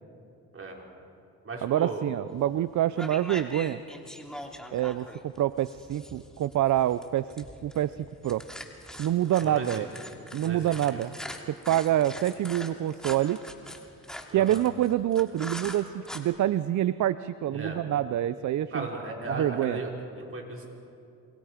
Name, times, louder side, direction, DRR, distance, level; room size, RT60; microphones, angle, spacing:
voice 1, 0.5-0.9 1.4-2.0 9.4-9.8 10.4-11.0 14.3-14.6 17.5-17.8 18.4-19.9 20.2-20.7, right 3 dB, 40° right, -1 dB, 5.5 m, -36 dB
voice 2, 1.6-3.8 4.7-8.0 8.2-8.5 9.0-9.9 10.3-11.2 11.5-13.4 14.3-18.9 19.3-19.8, right 12 dB, 55° right, 15 dB, 0.7 m, -26 dB
sound 1, 2.4-2.6 2.9-16.2, equal, ahead, 2.8 m, -42 dB
28.5 x 27.5 x 5.2 m, 2.6 s
supercardioid pair, 75°, 35 cm